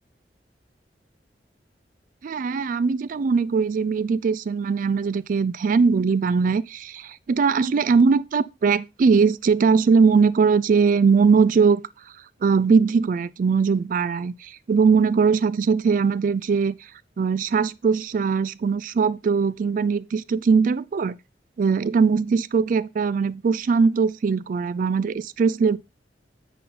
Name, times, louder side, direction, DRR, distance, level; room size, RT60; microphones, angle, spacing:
voice 1, 2.2-11.8 12.4-16.8 17.2-21.2 21.6-25.8, right 5 dB, 50° right, 0.3 m, -20 dB
9.3 x 4.2 x 3.8 m
head